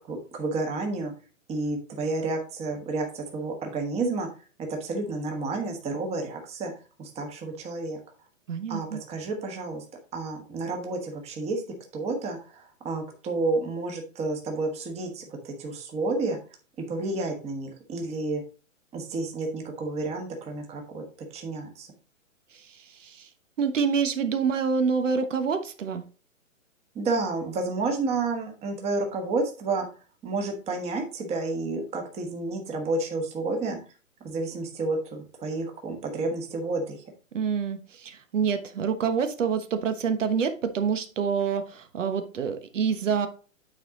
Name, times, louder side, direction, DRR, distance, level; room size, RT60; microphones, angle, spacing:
voice 1, 0.1-1.1 1.5-4.3 4.6-6.7 7.0-8.0 8.7-9.8 10.1-11.6 11.9-16.4 16.9-18.4 18.9-21.0 21.3-21.9 26.9-29.9 30.2-33.8 34.2-37.1, right 3 dB, 15° right, 3 dB, 1.4 m, -30 dB
voice 2, 8.5-9.0 22.5-23.3 23.6-26.0 37.3-43.3, right 6 dB, 65° right, 9 dB, 1.2 m, -27 dB
9.3 x 4.6 x 3.7 m, 0.36 s
hypercardioid pair, 140°, 40 cm